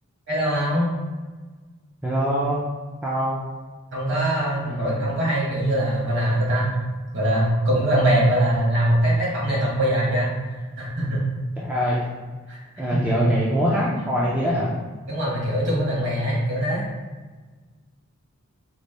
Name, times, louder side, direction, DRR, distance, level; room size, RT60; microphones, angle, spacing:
voice 1, 0.3-0.9 3.9-6.7 7.1-11.2 12.5-12.6 12.9-13.2 15.1-16.8, right 1 dB, 50° right, -4 dB, 1.0 m, -22 dB
voice 2, 2.0-2.6 3.0-3.4 4.6-5.0 11.6-12.0 12.8-14.7, equal, 5° right, -7 dB, 0.3 m, -23 dB
4.0 x 2.0 x 3.2 m, 1.4 s
head